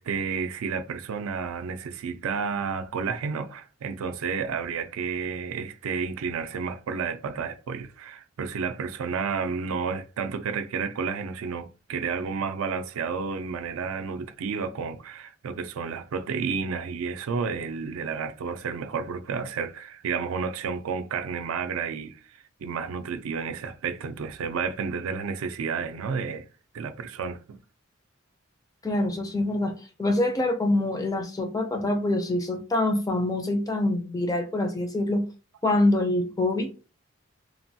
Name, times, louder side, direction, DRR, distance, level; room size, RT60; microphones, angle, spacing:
voice 1, 0.0-26.5 26.7-27.6, right 5 dB, 80° right, 0.4 m, -31 dB
voice 2, 28.8-29.7 30.0-35.2 35.6-36.7, left 1 dB, 15° left, 0.4 m, -25 dB
3.0 x 2.1 x 2.6 m
head